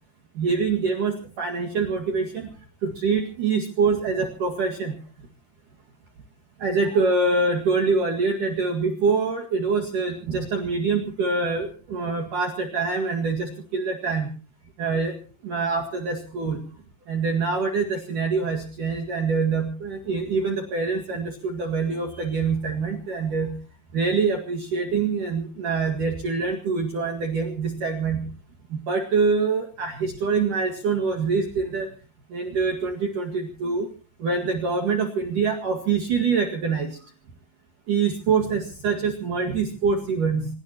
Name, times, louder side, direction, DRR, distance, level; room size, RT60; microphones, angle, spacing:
voice 1, 0.4-2.5 2.8-4.9 6.6-14.3 14.8-15.1 15.4-16.6 17.1-23.5 23.9-28.2 28.7-31.9 32.3-33.9 34.2-36.9 37.9-40.5, right 4 dB, 50° right, 2 dB, 3.0 m, -25 dB
26.5 x 18.0 x 3.0 m, 0.38 s
omnidirectional pair, 5.4 m